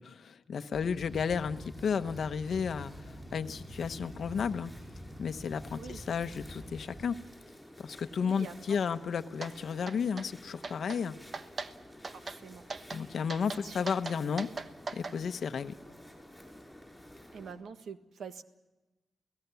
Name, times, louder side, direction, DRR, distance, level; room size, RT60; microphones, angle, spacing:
voice 1, 0.0-4.7 5.2-7.2 7.8-11.1 12.9-14.5 14.9-15.8, left 6 dB, 55° left, 10 dB, 1.0 m, -33 dB
sound 1, 0.7-7.1, equal, 15° right, 7.8 m, -47 dB
sound 2, 1.1-17.5, left 1 dB, 5° left, 6.0 m, -53 dB
voice 2, 8.2-8.8 12.1-12.7 13.6-13.9 17.3-18.4, right 6 dB, 75° right, 8 dB, 1.5 m, -45 dB
sound 3, 9.4-9.5 9.9-10.3 10.6-11.0 11.3-11.7 12.0-12.4 12.7-13.0 13.3-15.2, right 4 dB, 40° right, 1.1 m, -39 dB
29.5 x 17.5 x 7.0 m, 1.1 s
wide cardioid pair, 160°, 0 cm